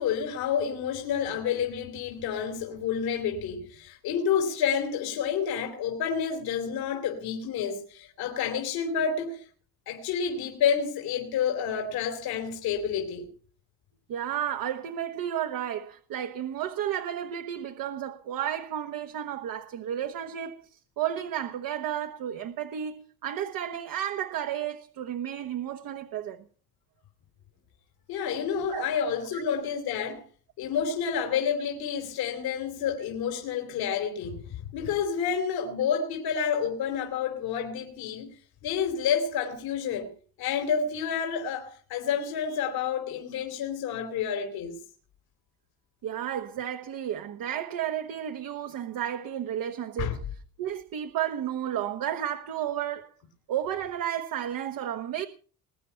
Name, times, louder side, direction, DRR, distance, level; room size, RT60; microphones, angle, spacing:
voice 1, 0.0-9.5 9.9-13.3 28.1-30.2 30.6-38.3 38.6-40.1 40.4-44.8 50.0-50.2, left 7 dB, 75° left, 3.1 m, -29 dB
voice 2, 14.1-26.4 28.7-28.9 29.3-29.4 46.0-50.2 50.6-53.1 53.5-55.3, right 10 dB, 65° right, 1.3 m, -32 dB
21.0 x 9.3 x 5.7 m
cardioid pair, 115°, 37 cm